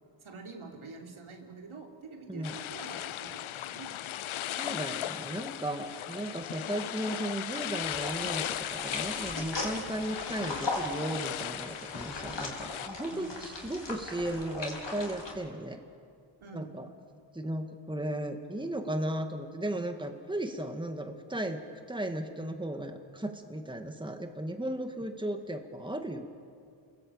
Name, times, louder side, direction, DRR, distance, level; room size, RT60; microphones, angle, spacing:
voice 1, 0.2-3.9 13.1-13.4 16.4-16.8, right 4 dB, 85° right, 1 dB, 3.5 m, -46 dB
sound 1, 2.4-12.9, left 12 dB, 80° left, 0.6 m, -37 dB
voice 2, 4.4-15.8 16.5-16.9 17.3-26.3, right 1 dB, 10° right, 5 dB, 1.9 m, -36 dB
sound 2, 7.8-15.3, left 2 dB, 60° left, 4.8 m, -38 dB
29.5 x 20.5 x 8.8 m, 2.3 s
wide cardioid pair, 80°, 48 cm